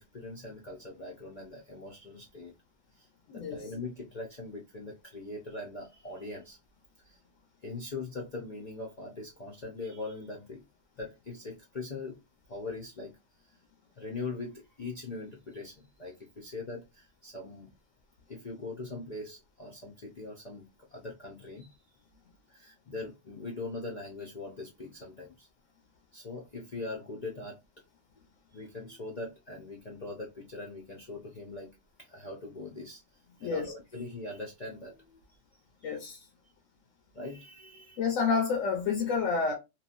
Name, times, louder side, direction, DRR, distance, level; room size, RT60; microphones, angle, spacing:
voice 1, 0.0-2.5 2.9-6.6 7.0-7.2 7.6-10.7 11.0-12.2 12.5-13.1 13.4-13.6 13.9-17.7 18.3-21.7 22.5-25.5 26.1-27.6 28.5-31.7 32.0-35.2 35.8-35.9 37.1-38.0, left 3 dB, 45° left, 0.5 m, -41 dB
voice 2, 33.4-33.7 35.8-36.2 38.0-39.5, left 5 dB, 85° left, 1.1 m, -29 dB
3.0 x 2.4 x 2.4 m
omnidirectional pair, 1.3 m